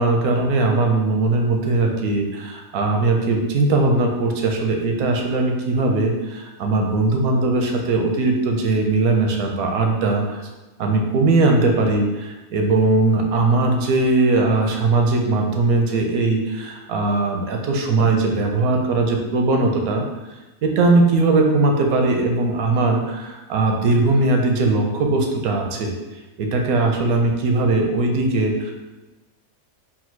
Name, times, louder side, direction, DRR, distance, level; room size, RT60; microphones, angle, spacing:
voice 1, 0.0-10.4 10.8-20.0 20.6-25.9 26.4-28.7, right 3 dB, 90° right, 2 dB, 1.2 m, -19 dB
4.1 x 2.3 x 4.4 m, 1.1 s
omnidirectional pair, 1.5 m